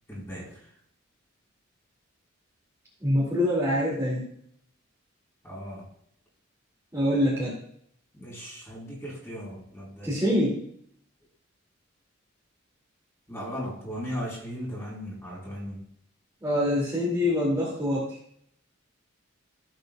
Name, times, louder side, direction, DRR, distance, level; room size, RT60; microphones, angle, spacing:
voice 1, 0.1-0.5 5.4-5.8 8.1-10.2 13.3-15.8, equal, 10° left, -4 dB, 4.3 m, -37 dB
voice 2, 3.0-4.3 6.9-7.6 10.0-10.6 16.4-18.2, left 1 dB, 15° right, -6 dB, 2.4 m, -25 dB
16.0 x 7.8 x 2.3 m, 0.67 s
head